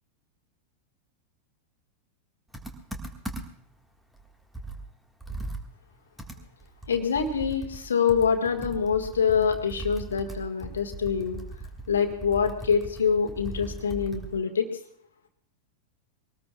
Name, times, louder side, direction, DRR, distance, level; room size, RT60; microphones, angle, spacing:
Computer keyboard, 2.5-3.7 4.1-4.2 4.5-14.4, right 2 dB, 5° right, 1.7 m, -39 dB
voice 1, 6.9-11.4 11.9-14.7, left 6 dB, 70° left, 4 dB, 1.7 m, -25 dB
23.0 x 19.0 x 2.4 m, 0.67 s
figure-of-eight pair, 90°, 0 cm